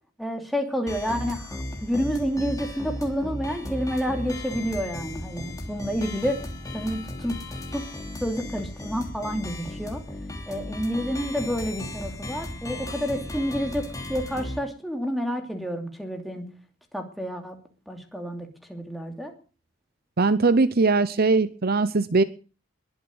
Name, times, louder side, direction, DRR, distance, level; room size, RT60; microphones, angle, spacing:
voice 1, 0.2-6.4 6.7-7.4 7.7-7.8 8.2-10.0 10.4-13.8 14.1-16.5 16.9-17.6 17.9-19.3, equal, ahead, 3 dB, 2.9 m, -29 dB
sound 1, 0.9-14.6, left 1 dB, 15° left, 3.1 m, -36 dB
voice 2, 20.2-22.2, right 3 dB, 50° right, 15 dB, 0.7 m, -20 dB
21.5 x 7.3 x 8.0 m, 0.38 s
head